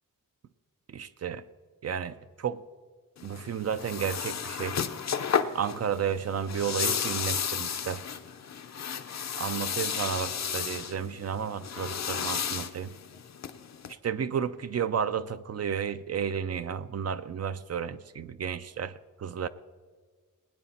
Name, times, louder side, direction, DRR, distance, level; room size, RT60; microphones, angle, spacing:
voice 1, 0.9-1.4 1.8-2.6 3.2-4.8 5.5-8.0 9.4-12.9 14.0-18.9 19.2-19.5, right 7 dB, 50° right, 13 dB, 0.4 m, -32 dB
sound 1, 3.2-13.9, left 7 dB, 55° left, 0.6 m, -33 dB
20.0 x 9.5 x 4.3 m, 1.5 s
wide cardioid pair, 165°, 33 cm